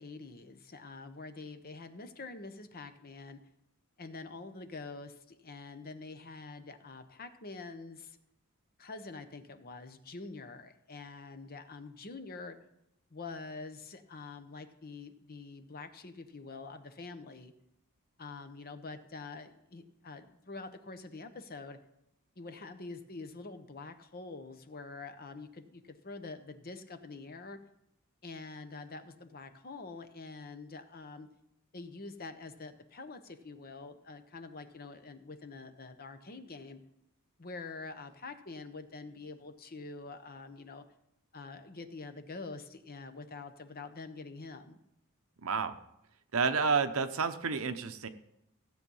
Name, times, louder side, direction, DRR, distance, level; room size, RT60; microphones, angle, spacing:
voice 1, 0.0-3.4 4.0-8.2 8.8-12.6 13.1-17.5 18.2-21.8 22.4-27.6 28.2-31.3 31.7-36.8 37.4-40.8 41.3-44.8, left 3 dB, 45° left, 9 dB, 0.9 m, -46 dB
voice 2, 45.4-45.7 46.3-48.1, right 5 dB, 70° right, 9 dB, 0.8 m, -30 dB
15.0 x 7.8 x 5.5 m, 0.81 s
head